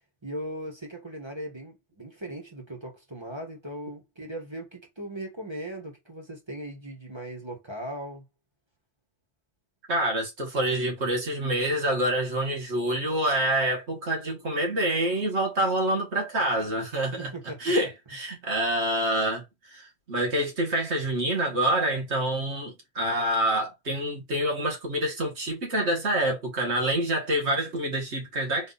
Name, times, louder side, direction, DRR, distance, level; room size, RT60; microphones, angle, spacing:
voice 1, 0.2-8.2 17.2-17.6, right 1 dB, 25° right, 1.4 m, -38 dB
voice 2, 9.9-17.3 17.6-28.7, right 1 dB, 90° right, 2.0 m, -27 dB
4.1 x 2.7 x 4.0 m
omnidirectional pair, 1.1 m